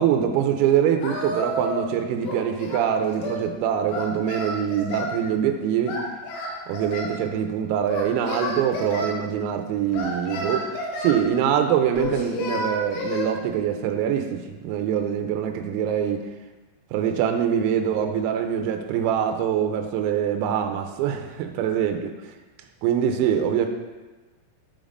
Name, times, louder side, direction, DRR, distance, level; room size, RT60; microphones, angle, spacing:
voice 1, 0.0-6.0 6.7-10.7 11.0-16.3 16.9-22.3 22.8-23.7, right 9 dB, 90° right, 5 dB, 3.4 m, -24 dB
Singing, 1.0-1.9 2.2-3.4 3.9-5.2 5.9-7.2 7.9-9.1 9.9-11.2 12.0-13.3, left 1 dB, 90° left, 4.0 m, -30 dB
12.5 x 5.2 x 2.5 m, 1.2 s
omnidirectional pair, 6.0 m